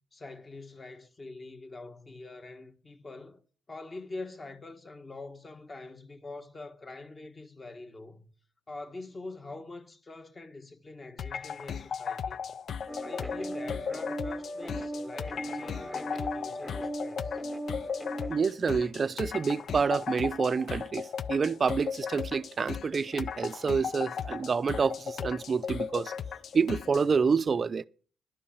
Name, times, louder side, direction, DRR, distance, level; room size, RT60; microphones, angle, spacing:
voice 1, 0.1-3.4 3.7-8.3 8.7-12.4 13.0-17.4, left 2 dB, 30° left, 1.5 m, -44 dB
sound 1, 11.2-27.1, left 7 dB, 55° left, 0.5 m, -37 dB
sound 2, 12.9-18.3, equal, 5° left, 1.0 m, -37 dB
voice 2, 18.3-26.1 26.5-27.8, right 5 dB, 40° right, 0.5 m, -28 dB
11.5 x 5.4 x 8.6 m
cardioid pair, 90°, 0 cm